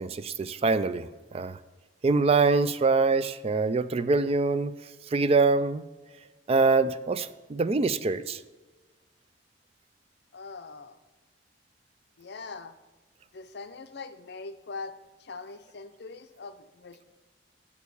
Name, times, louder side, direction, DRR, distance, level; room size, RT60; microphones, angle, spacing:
voice 1, 0.0-1.6 2.0-4.7 5.1-5.8 6.5-8.4, right 4 dB, 35° right, 14 dB, 0.3 m, -24 dB
voice 2, 10.3-11.0 12.2-12.8 13.3-17.0, left 4 dB, 60° left, 9 dB, 0.6 m, -42 dB
7.2 x 6.4 x 6.9 m, 1.3 s
head